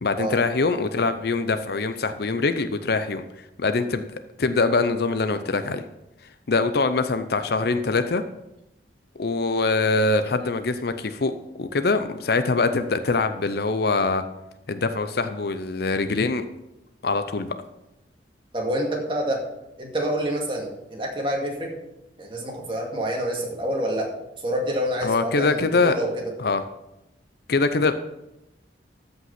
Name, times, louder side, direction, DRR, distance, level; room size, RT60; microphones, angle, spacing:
voice 1, 0.0-4.0 4.4-5.8 6.5-8.2 9.2-14.2 14.7-16.4 17.0-17.5 25.0-26.0 26.4-26.6 27.5-27.9, left 3 dB, 60° left, 10 dB, 0.6 m, -23 dB
voice 2, 18.5-19.4 19.8-21.7 22.2-26.1, equal, 30° right, 0 dB, 2.1 m, -27 dB
13.5 x 5.6 x 5.9 m, 0.91 s
head